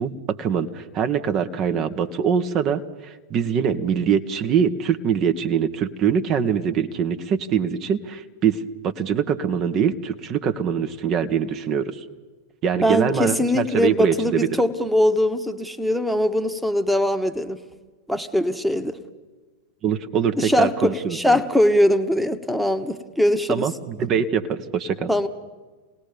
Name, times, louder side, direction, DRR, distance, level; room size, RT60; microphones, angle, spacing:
voice 1, 0.0-12.0 12.6-14.5 19.8-21.4 23.5-25.1, right 7 dB, 35° right, 8 dB, 1.4 m, -23 dB
voice 2, 12.8-17.6 18.1-19.0 20.4-23.7 25.1-25.3, left 1 dB, ahead, 8 dB, 1.5 m, -21 dB
29.0 x 19.0 x 5.3 m, 1.3 s
figure-of-eight pair, 90°, 0 cm